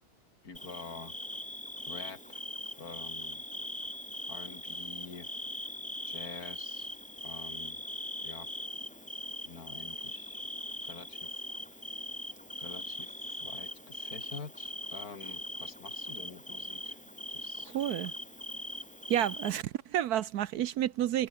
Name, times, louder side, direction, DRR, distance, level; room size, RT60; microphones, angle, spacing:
voice 1, 0.4-1.1 1.9-3.4 4.3-5.3 6.1-6.9 7.2-7.8 8.2-8.5 9.4-10.4 10.8-11.4 12.6-17.0 17.3-17.8, left 4 dB, 65° left, 3.2 m, -47 dB
Bird / Cricket, 0.5-19.6, left 1 dB, 5° left, 0.7 m, -41 dB
voice 2, 17.7-18.1 19.1-21.3, right 11 dB, 75° right, 1.2 m, -30 dB
omnidirectional pair, 1.7 m